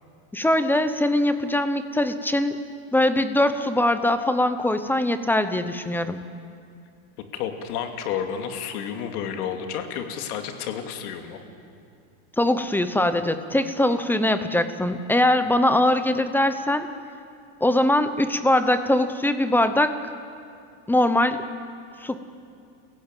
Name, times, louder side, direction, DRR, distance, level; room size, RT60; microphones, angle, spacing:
voice 1, 0.3-2.6 2.9-6.2 12.4-16.9 17.6-20.0 20.9-21.4 22.0-22.2, left 1 dB, 5° left, 10 dB, 0.8 m, -22 dB
voice 2, 7.2-11.4, left 8 dB, 80° left, 5 dB, 2.8 m, -31 dB
29.5 x 16.0 x 9.1 m, 2.4 s
supercardioid pair, 150°, 44 cm